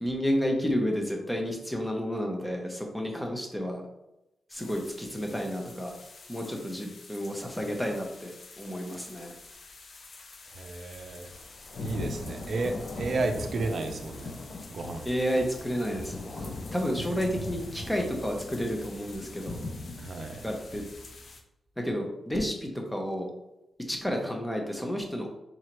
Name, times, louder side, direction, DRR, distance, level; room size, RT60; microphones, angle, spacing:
voice 1, 0.0-3.8 4.5-5.9 6.3-9.3 15.1-19.6 20.4-20.8 21.8-23.3 23.9-25.3, equal, 5° left, 2 dB, 0.7 m, -31 dB
sound 1, 4.5-21.4, left 2 dB, 50° left, 0.5 m, -42 dB
voice 2, 10.5-11.3 11.8-14.3 14.7-15.1 20.0-20.5, right 3 dB, 55° right, 5 dB, 0.5 m, -32 dB
3.8 x 3.1 x 3.0 m, 0.91 s
wide cardioid pair, 140°, 0 cm